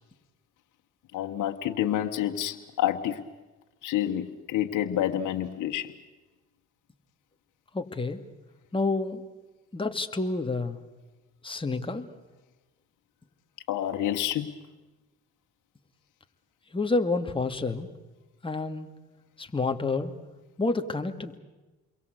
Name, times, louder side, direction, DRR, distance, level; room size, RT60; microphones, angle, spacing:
voice 1, 1.1-3.2 3.8-5.9 13.7-14.5, left 11 dB, 85° left, 4 dB, 1.6 m, -28 dB
voice 2, 7.7-8.2 8.7-9.2 9.7-10.8 11.4-12.1 16.7-17.9 18.4-18.9 19.4-20.1 20.6-21.4, left 3 dB, 15° left, 5 dB, 2.4 m, -29 dB
29.0 x 23.0 x 8.2 m, 1.1 s
cardioid pair, 90°, 30 cm